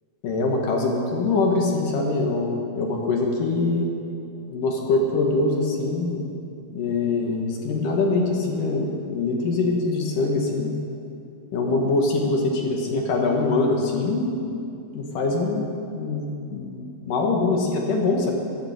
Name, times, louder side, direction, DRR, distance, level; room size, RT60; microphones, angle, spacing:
voice 1, 0.2-3.9 4.5-6.2 6.7-10.8 11.5-14.5 14.9-15.7 15.9-18.3, left 3 dB, 60° left, 0 dB, 2.4 m, -23 dB
14.0 x 11.5 x 8.5 m, 2.6 s
omnidirectional pair, 5.6 m